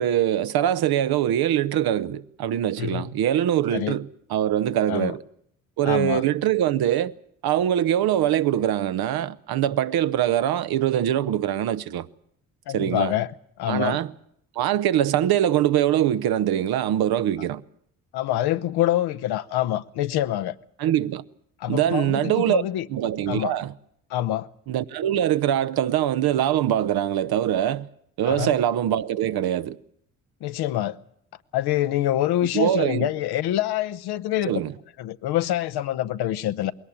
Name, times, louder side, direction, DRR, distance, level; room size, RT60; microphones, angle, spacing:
voice 1, 0.0-5.2 5.8-7.1 7.4-12.1 12.7-13.1 13.7-14.1 14.6-17.6 20.8-21.2 21.7-22.6 22.9-23.7 24.7-27.9 28.2-29.8 32.5-33.1 34.5-34.7, right 11 dB, 65° right, 0.9 m, -23 dB
voice 2, 5.8-6.2 12.7-13.3 13.6-14.0 18.1-20.6 21.6-22.9 23.3-23.5 24.1-24.5 28.2-28.5 30.4-31.0 31.5-34.6 35.0-36.7, left 13 dB, 70° left, 1.0 m, -25 dB
21.0 x 18.0 x 8.7 m
hypercardioid pair, 50°, 40 cm